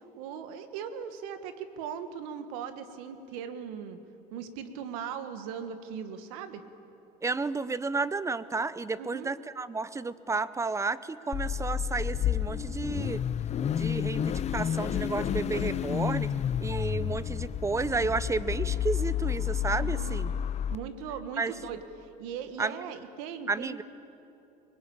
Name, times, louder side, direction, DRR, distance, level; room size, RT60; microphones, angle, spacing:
voice 1, 0.2-4.0 4.3-6.6 9.0-9.3 19.7-20.2 20.7-21.8 22.2-23.8, right 7 dB, 85° right, 9 dB, 1.7 m, -39 dB
voice 2, 7.2-13.2 13.7-16.3 16.6-20.3 21.4-21.5 22.6-22.8 23.5-23.8, right 4 dB, 15° right, 16 dB, 0.7 m, -32 dB
Car / Idling / Accelerating revving vroom, 11.3-20.8, left 9 dB, 35° left, 0.7 m, -30 dB
23.0 x 20.5 x 8.7 m, 2.9 s
supercardioid pair, 105°, 18 cm